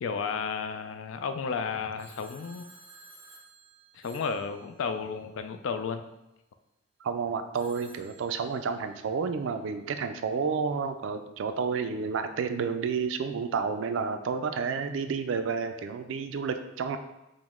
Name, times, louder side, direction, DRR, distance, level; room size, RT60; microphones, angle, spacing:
voice 1, 0.0-2.7 3.9-6.0, left 5 dB, 70° left, 9 dB, 0.3 m, -33 dB
Telephone, 2.0-5.3 7.5-9.1, right 3 dB, 25° right, 0.6 m, -54 dB
voice 2, 7.0-17.0, right 5 dB, 65° right, 8 dB, 0.3 m, -30 dB
5.0 x 2.1 x 3.5 m, 0.93 s
head